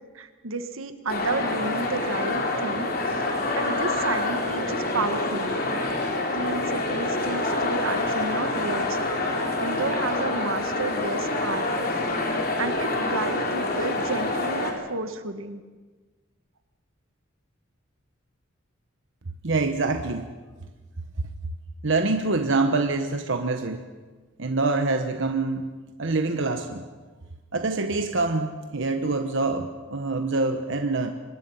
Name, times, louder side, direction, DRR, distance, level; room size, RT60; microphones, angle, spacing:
voice 1, 0.1-2.9 3.3-5.6 6.3-9.2 9.6-11.7 12.6-15.6, right 3 dB, 85° right, 8 dB, 1.6 m, -31 dB
sound 1, 1.1-14.7, left 2 dB, 50° left, 3.5 m, -27 dB
voice 2, 19.4-20.3 21.2-21.3 21.8-23.8 24.4-25.7 26.0-26.8 27.5-31.1, right 3 dB, 65° right, 6 dB, 1.1 m, -25 dB
25.0 x 21.0 x 5.7 m, 1.3 s
head